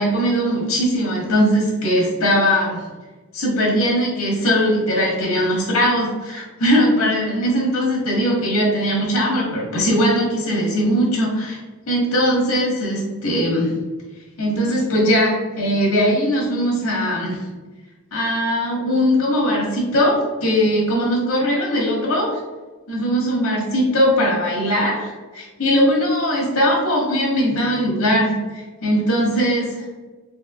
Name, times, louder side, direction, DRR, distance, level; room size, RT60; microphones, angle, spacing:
voice 1, 0.0-2.9 3.3-11.6 11.8-13.8 14.4-17.4 18.1-22.4 22.9-29.8, equal, 75° left, -3 dB, 1.5 m, -20 dB
4.3 x 3.3 x 2.4 m, 1.3 s
head